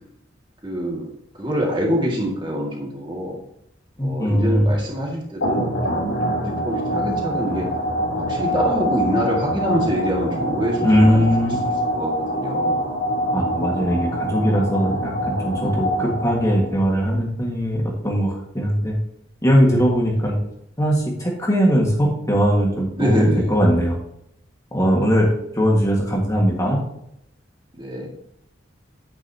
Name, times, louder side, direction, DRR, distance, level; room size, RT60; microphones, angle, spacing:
voice 1, 0.6-3.4 4.0-6.0 6.3-7.7 8.2-12.9 20.1-20.2 22.9-23.6 24.9-25.2 27.7-28.1, equal, 25° right, -1 dB, 2.0 m, -25 dB
voice 2, 4.0-4.8 10.8-11.6 13.3-19.0 19.4-20.4 20.8-24.0 24.7-25.3 25.5-26.8, equal, 15° left, -2 dB, 1.7 m, -19 dB
sound 1, 5.4-16.8, equal, 85° left, 3.1 m, -25 dB
10.5 x 8.9 x 2.8 m, 0.75 s
head